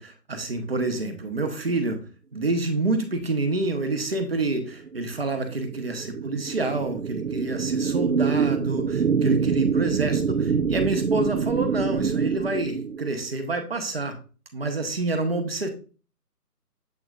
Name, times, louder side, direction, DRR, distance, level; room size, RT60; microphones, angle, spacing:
voice 1, 0.0-2.0 2.3-14.1 14.5-15.7, right 2 dB, 40° right, 6 dB, 1.2 m, -28 dB
sound 1, 4.6-13.3, right 6 dB, 60° right, 0.5 m, -26 dB
8.0 x 5.7 x 2.5 m, 0.36 s
figure-of-eight pair, 155°, 48 cm